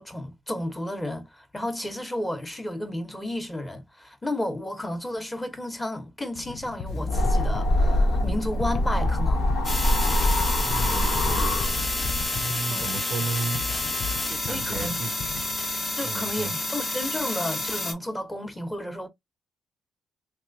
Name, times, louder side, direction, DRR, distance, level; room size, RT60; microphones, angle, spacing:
voice 1, 0.0-9.4 12.7-12.9 14.4-15.0 15.9-19.1, left 1 dB, 15° left, 0.9 m, -32 dB
sound 1, 6.4-15.9, left 5 dB, 55° left, 0.4 m, -37 dB
sound 2, 6.9-12.3, left 1 dB, 80° left, 0.9 m, -24 dB
sound 3, 9.6-17.9, left 2 dB, 35° left, 0.9 m, -29 dB
voice 2, 10.6-11.6 12.3-13.6 14.2-15.1 16.0-16.5, right 4 dB, 50° right, 0.5 m, -33 dB
3.2 x 2.9 x 2.6 m
cardioid pair, 100°, 0 cm